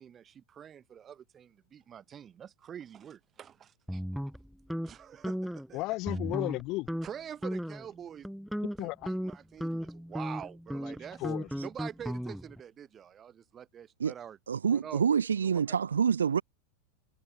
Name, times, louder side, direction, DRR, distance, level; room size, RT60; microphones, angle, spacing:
voice 1, 0.0-4.0 4.8-5.8 7.0-8.3 8.8-11.3 11.6-14.4 14.7-15.0 15.4-15.8, right 8 dB, 25° right, 6.1 m, -46 dB
sound 1, 3.9-4.9 5.2-5.7 6.1-6.6 6.9-7.1 7.4-7.9 8.2-12.6, equal, ahead, 0.3 m, -35 dB
voice 2, 5.7-6.9 8.8-9.1 11.2-11.5, left 21 dB, 40° left, 0.8 m, -33 dB
voice 3, 14.5-16.4, right 7 dB, 70° right, 0.6 m, -27 dB
figure-of-eight pair, 90°, 0 cm